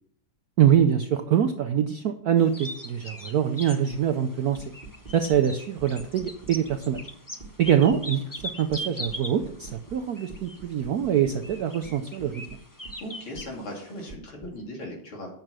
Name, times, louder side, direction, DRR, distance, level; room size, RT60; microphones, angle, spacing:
voice 1, 0.6-4.6 5.1-7.0 7.6-8.2 8.6-12.4, right 9 dB, 75° right, 7 dB, 0.8 m, -24 dB
sound 1, 2.4-14.1, equal, 20° left, 0.5 m, -41 dB
sound 2, 4.5-5.4 5.8-7.1 7.4-8.0 8.4-10.0 10.3-13.0 13.3-13.5 14.1-14.5, right 4 dB, 25° right, 1.7 m, -45 dB
voice 2, 13.0-15.3, left 1 dB, 75° left, 0 dB, 3.5 m, -38 dB
9.0 x 6.7 x 6.1 m, 0.66 s
omnidirectional pair, 2.3 m